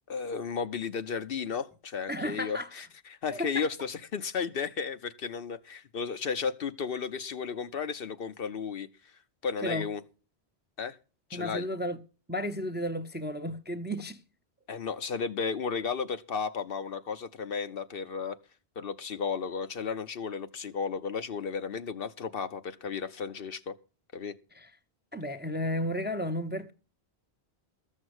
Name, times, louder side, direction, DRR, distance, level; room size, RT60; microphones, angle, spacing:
voice 1, 0.1-2.8 3.2-8.9 9.4-10.0 10.8-11.0 11.3-11.7 14.7-18.4 18.8-23.7 24.1-24.4, left 6 dB, 60° left, 0.9 m, -34 dB
voice 2, 2.1-2.9 3.3-3.7 9.6-9.9 11.3-12.0 12.3-14.2 24.5-24.7 25.1-26.7, equal, 10° right, 0.6 m, -33 dB
14.0 x 6.4 x 7.9 m
omnidirectional pair, 1.1 m